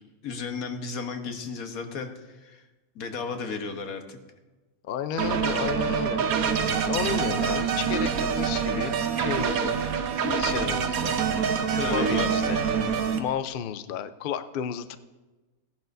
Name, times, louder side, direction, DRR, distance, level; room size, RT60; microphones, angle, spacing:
voice 1, 0.2-2.6 2.9-4.2 11.7-12.5, left 5 dB, 85° left, 6 dB, 1.5 m, -34 dB
voice 2, 4.8-6.2 6.9-9.8 10.2-11.2 11.9-12.6 13.2-15.0, left 8 dB, 60° left, 11 dB, 0.5 m, -32 dB
sound 1, 5.2-13.2, right 6 dB, 85° right, 1.3 m, -26 dB
17.5 x 10.5 x 2.6 m, 1.2 s
omnidirectional pair, 1.5 m